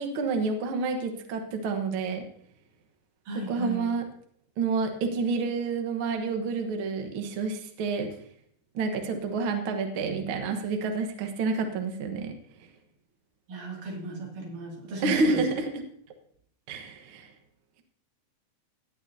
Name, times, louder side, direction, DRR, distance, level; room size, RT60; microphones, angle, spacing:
voice 1, 0.0-2.2 3.3-4.1 4.6-8.1 8.7-12.3 15.0-15.7 16.7-17.3, right 4 dB, 55° right, 5 dB, 1.6 m, -29 dB
voice 2, 3.3-3.9 13.5-15.4, right 2 dB, 80° right, -1 dB, 4.1 m, -35 dB
17.5 x 9.2 x 2.8 m, 0.63 s
omnidirectional pair, 3.7 m